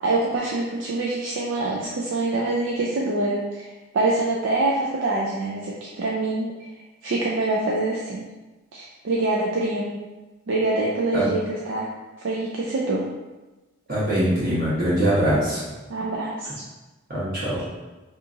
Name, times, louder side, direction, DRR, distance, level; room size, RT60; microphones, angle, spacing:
voice 1, 0.0-6.5 7.0-8.2 8.7-10.0 10.5-11.9 12.2-13.0 15.9-16.6, right 2 dB, 70° right, -4 dB, 0.4 m, -25 dB
voice 2, 13.9-15.6 17.1-17.6, right 1 dB, 45° right, -9 dB, 1.2 m, -22 dB
2.8 x 2.4 x 3.7 m, 1.1 s
head